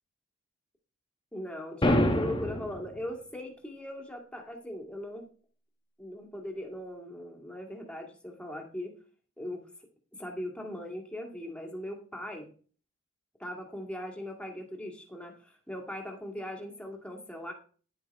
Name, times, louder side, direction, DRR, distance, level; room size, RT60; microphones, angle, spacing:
voice 1, 1.3-5.3 6.0-8.9 9.4-9.6 10.2-12.5 13.4-17.5, left 1 dB, 5° left, 1 dB, 2.0 m, -39 dB
sound 1, 1.8-2.8, left 1 dB, 25° left, 1.1 m, -25 dB
10.0 x 9.9 x 3.5 m, 0.41 s
head